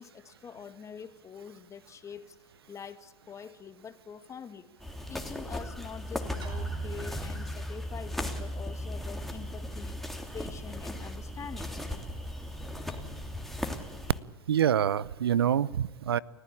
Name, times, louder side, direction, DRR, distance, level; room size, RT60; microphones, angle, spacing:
voice 1, 0.0-2.4 2.7-4.7 5.1-10.0 10.3-11.7, left 7 dB, 25° left, 11 dB, 1.9 m, -45 dB
sound 1, 4.8-14.2, left 1 dB, ahead, 3.2 m, -37 dB
sound 2, 6.4-8.3, right 7 dB, 35° right, 6.1 m, -41 dB
voice 2, 14.5-16.2, right 9 dB, 85° right, 23 dB, 0.7 m, -26 dB
30.0 x 14.5 x 8.6 m, 1.2 s
hypercardioid pair, 95°, 13 cm